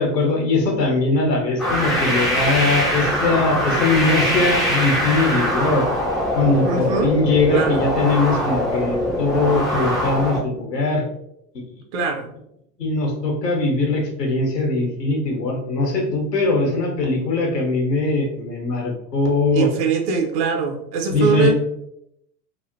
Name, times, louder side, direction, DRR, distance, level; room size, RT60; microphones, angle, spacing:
voice 1, 0.0-5.9 6.3-11.0 11.5-11.6 12.8-19.7 21.1-21.5, left 3 dB, 85° left, 0 dB, 1.0 m, -21 dB
sound 1, 1.6-10.4, equal, ahead, 0.3 m, -22 dB
voice 2, 6.6-7.1 7.5-7.8 11.9-12.3 19.5-21.5, right 5 dB, 50° right, 4 dB, 0.6 m, -21 dB
3.2 x 2.1 x 2.6 m, 0.77 s
hypercardioid pair, 90°, 47 cm